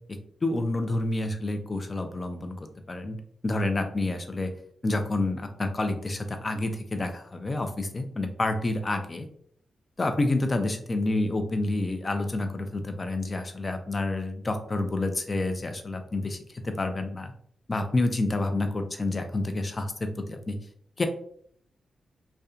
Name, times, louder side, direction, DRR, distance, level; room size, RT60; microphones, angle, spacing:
voice 1, 0.4-3.2 3.4-4.5 4.8-9.3 10.0-17.3 17.7-20.6 21.0-21.1, left 2 dB, 40° left, 6 dB, 0.4 m, -29 dB
2.7 x 2.2 x 2.4 m, 0.62 s
cardioid pair, 65°, 0 cm